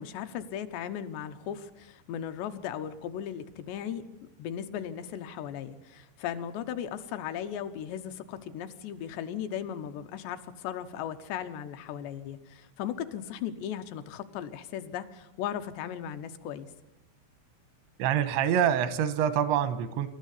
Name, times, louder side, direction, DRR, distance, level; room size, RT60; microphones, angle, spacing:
voice 1, 0.0-4.1 4.4-16.7, left 9 dB, 75° left, 8 dB, 3.0 m, -37 dB
voice 2, 18.0-20.1, right 9 dB, 85° right, 12 dB, 3.3 m, -26 dB
25.0 x 13.0 x 8.3 m, 0.95 s
omnidirectional pair, 5.2 m